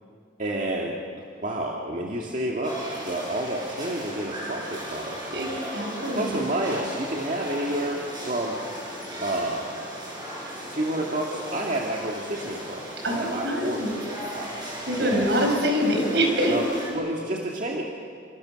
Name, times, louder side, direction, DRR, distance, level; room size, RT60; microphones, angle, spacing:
voice 1, 0.4-1.0 1.4-2.8 3.0-5.6 6.1-8.6 9.2-9.7 10.7-13.9 15.0-15.3 16.5-17.8, right 1 dB, 45° right, -1 dB, 2.0 m, -29 dB
sound 1, 2.6-16.9, equal, 25° right, 7.9 m, -36 dB
voice 2, 5.3-6.4 13.0-14.0 14.9-16.6, equal, 70° right, 2 dB, 5.4 m, -25 dB
28.0 x 26.0 x 6.5 m, 2.3 s
head